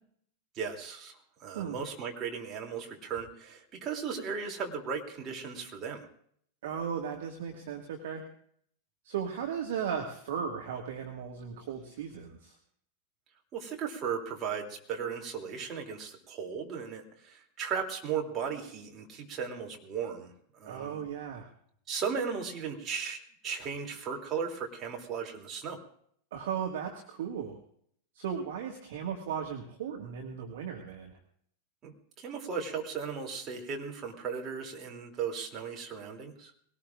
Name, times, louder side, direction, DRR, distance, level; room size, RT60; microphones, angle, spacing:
voice 1, 0.5-1.2 1.4-6.1 13.5-20.3 20.6-21.0 21.9-25.8 31.8-36.5, right 6 dB, 30° right, 1 dB, 2.9 m, -36 dB
voice 2, 6.6-8.2 9.0-12.6 20.7-21.5 26.3-27.6 28.2-31.2, right 7 dB, 55° right, 2 dB, 1.8 m, -36 dB
21.5 x 18.5 x 2.5 m, 0.64 s
figure-of-eight pair, 90°, 0 cm